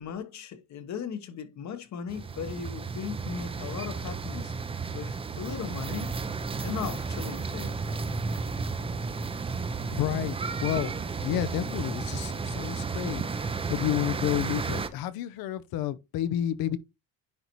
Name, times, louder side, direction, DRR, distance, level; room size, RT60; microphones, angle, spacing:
voice 1, 0.0-4.5 4.9-6.1 6.6-7.8, left 7 dB, 50° left, 1.1 m, -37 dB
sound 1, 2.1-14.9, right 4 dB, 15° right, 0.5 m, -33 dB
voice 2, 9.9-16.8, left 12 dB, 70° left, 0.8 m, -31 dB
9.8 x 4.0 x 3.0 m
cardioid pair, 135°, 37 cm